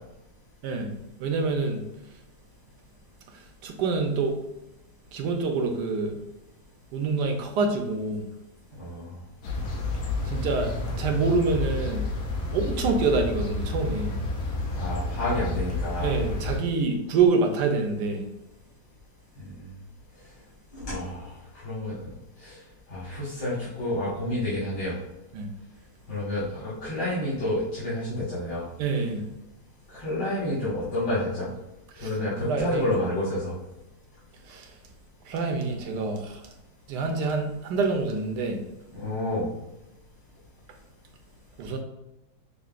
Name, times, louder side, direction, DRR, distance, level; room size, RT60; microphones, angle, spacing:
voice 1, 1.2-1.8 3.6-4.3 5.1-6.2 6.9-8.2 10.3-10.7 11.0-12.0 12.5-14.2 16.0-18.2 25.3-25.5 28.8-29.2 32.0-32.1 32.4-32.9 34.5-34.7 35.3-36.4 36.9-38.6 41.6-41.8, right 4 dB, 80° right, 4 dB, 1.3 m, -26 dB
voice 2, 8.8-9.1 14.8-16.1 19.4-19.6 20.7-22.1 22.4-22.6 22.9-25.0 26.1-28.6 29.9-31.5 32.0-33.5 38.9-39.5, left 1 dB, 85° left, -11 dB, 2.2 m, -29 dB
sound 1, 9.4-16.6, left 2 dB, 65° left, 1.1 m, -30 dB
6.5 x 2.2 x 2.4 m, 0.93 s
omnidirectional pair, 1.8 m